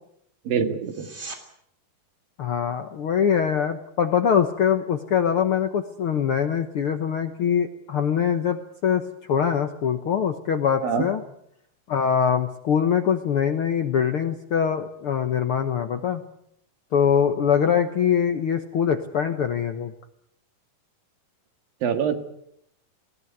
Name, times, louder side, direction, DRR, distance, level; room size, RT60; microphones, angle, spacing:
voice 1, 0.5-1.1 10.8-11.1 21.8-22.2, right 7 dB, 90° right, 7 dB, 3.7 m, -24 dB
sound 1, 0.8-1.4 12.8-12.9, right 3 dB, 20° right, 2.9 m, -39 dB
voice 2, 2.4-8.6 8.8-9.0 9.3-11.2 11.9-16.2 16.9-19.9, left 8 dB, 65° left, 7 dB, 1.3 m, -23 dB
20.0 x 18.0 x 9.6 m, 0.73 s
omnidirectional pair, 3.9 m